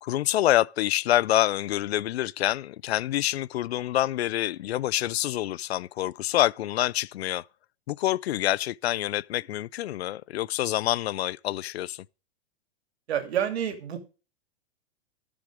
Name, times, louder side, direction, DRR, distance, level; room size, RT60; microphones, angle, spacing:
voice 1, 0.0-7.5 7.9-12.0, left 14 dB, 75° left, 0.5 m, -26 dB
voice 2, 13.1-14.0, right 9 dB, 75° right, 2.8 m, -28 dB
13.5 x 7.1 x 4.9 m
supercardioid pair, 170°, 32 cm